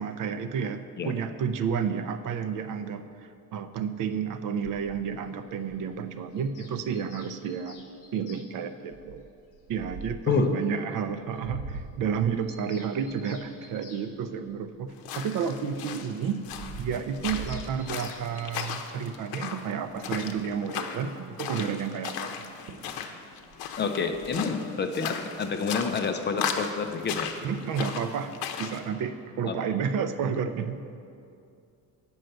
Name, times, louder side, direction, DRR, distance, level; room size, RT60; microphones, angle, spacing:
voice 1, 0.0-7.8 8.1-9.3 9.7-16.4 16.8-22.3 27.4-30.8, right 7 dB, 60° right, 10 dB, 0.6 m, -31 dB
sound 1, 4.6-6.1 6.6-6.7 7.0-7.2 7.8-8.1 8.9-10.4 11.0-14.9 15.4-18.5 18.9-19.2 19.5-19.6 19.8-20.6 22.3-22.4 22.7-23.0 23.3-24.3, right 4 dB, 90° right, 1.3 m, -43 dB
Bird vocalization bird call bird song, 6.3-8.5 9.9-10.0 10.3-10.4 10.6-10.7 11.0-11.1 11.3-11.4 11.7-11.8 12.1-14.1 17.2-18.8, left 6 dB, 60° left, 1.3 m, -50 dB
voice 2, 10.3-10.6 23.8-27.3 29.4-29.6, left 5 dB, 30° left, 7 dB, 0.5 m, -28 dB
sound 2, 15.0-28.8, left 7 dB, 75° left, 0.8 m, -37 dB
9.0 x 5.5 x 7.7 m, 2.5 s
cardioid pair, 155°, 37 cm